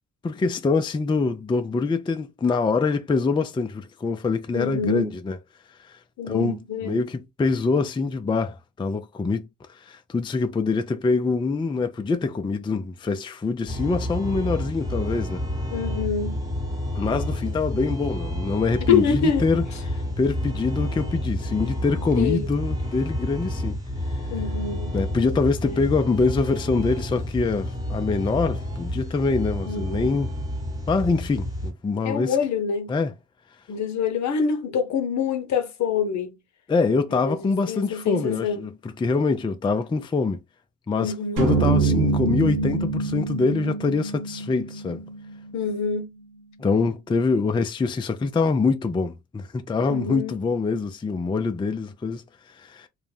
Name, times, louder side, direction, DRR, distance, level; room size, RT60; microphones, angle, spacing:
voice 1, 0.2-5.4 5.8-6.0 6.3-15.4 17.0-19.6 20.2-23.8 24.9-30.3 30.9-32.4 32.9-33.1 36.7-40.4 40.9-41.1 41.4-45.0 46.6-52.9, left 4 dB, 15° left, 0.4 m, -24 dB
voice 2, 4.5-5.1 6.2-7.0 15.7-16.4 18.9-19.4 22.2-22.5 24.3-24.9 25.7-25.8 29.7-30.2 32.0-32.9 33.7-36.4 37.1-38.6 41.0-41.5 45.5-46.1 49.9-50.4, left 6 dB, 55° left, 0.7 m, -26 dB
sound 1, 13.7-31.7, left 1 dB, 10° right, 1.0 m, -30 dB
sound 2, 41.4-45.7, right 3 dB, 65° right, 1.0 m, -25 dB
2.5 x 2.1 x 3.2 m
supercardioid pair, 60°, 33 cm